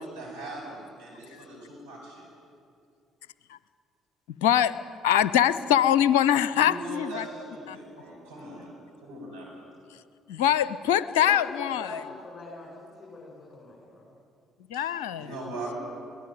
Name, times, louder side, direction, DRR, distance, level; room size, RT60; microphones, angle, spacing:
voice 1, 0.0-2.2 6.5-8.7 9.0-9.5 15.2-15.8, right 2 dB, 85° right, -6 dB, 7.6 m, -40 dB
voice 2, 4.4-7.3 7.7-7.8 10.3-12.0 14.7-15.4, left 10 dB, 75° left, 17 dB, 0.5 m, -23 dB
voice 3, 11.2-14.1, left 2 dB, 30° left, -3 dB, 6.7 m, -43 dB
23.5 x 17.5 x 9.3 m, 2.4 s
figure-of-eight pair, 50°, 0 cm